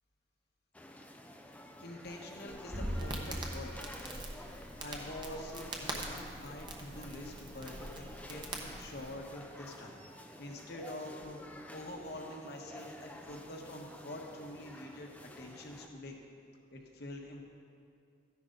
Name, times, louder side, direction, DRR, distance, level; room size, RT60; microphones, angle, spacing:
sound 1, 0.7-15.9, left 1 dB, 5° left, 0.5 m, -51 dB
voice 1, 1.8-3.7 4.6-11.4 11.7-16.2 16.7-17.4, left 1 dB, 55° left, 1 dB, 1.4 m, -46 dB
Crackle, 2.5-9.1, right 1 dB, 25° right, 1.0 m, -42 dB
14.0 x 10.5 x 3.9 m, 2.3 s
head